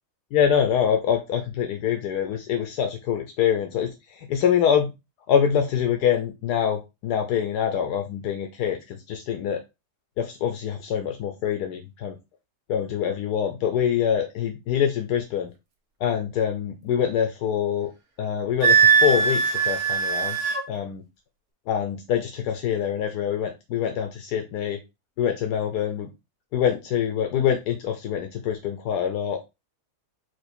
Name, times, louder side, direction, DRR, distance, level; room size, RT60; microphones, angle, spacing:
voice 1, 0.3-4.9 5.3-9.6 10.2-12.2 12.7-15.5 16.0-17.9 18.2-21.0 21.7-24.8 25.2-26.1 26.5-29.5, left 8 dB, 80° left, 5 dB, 1.2 m, -25 dB
Wind instrument woodwind instrument, 18.6-20.6, right 6 dB, 70° right, 1.5 m, -20 dB
4.7 x 2.7 x 4.2 m, 0.25 s
omnidirectional pair, 1.7 m